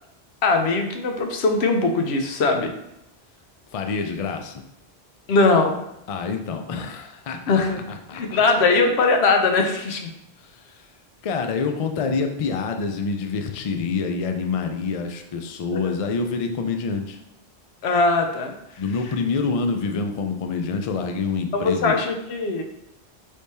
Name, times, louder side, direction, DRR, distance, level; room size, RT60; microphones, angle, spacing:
voice 1, 0.4-2.7 5.3-5.8 7.5-7.8 8.1-10.1 15.7-15.9 17.8-18.5 21.5-22.6, left 3 dB, 80° left, 4 dB, 0.9 m, -20 dB
voice 2, 3.7-4.6 6.1-7.4 7.9-8.4 10.4-10.9 11.2-17.2 18.8-22.0, left 4 dB, 55° left, 5 dB, 0.4 m, -27 dB
3.4 x 3.3 x 4.1 m, 0.84 s
omnidirectional pair, 1.1 m